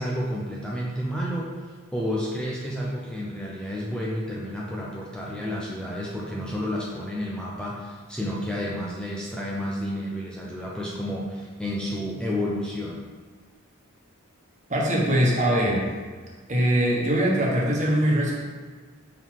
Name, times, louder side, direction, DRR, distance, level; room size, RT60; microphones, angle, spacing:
voice 1, 0.0-13.0, equal, 5° left, -5 dB, 0.6 m, -31 dB
voice 2, 14.7-15.9 16.5-18.4, equal, 35° right, -4 dB, 1.3 m, -22 dB
5.6 x 3.9 x 4.5 m, 1.5 s
head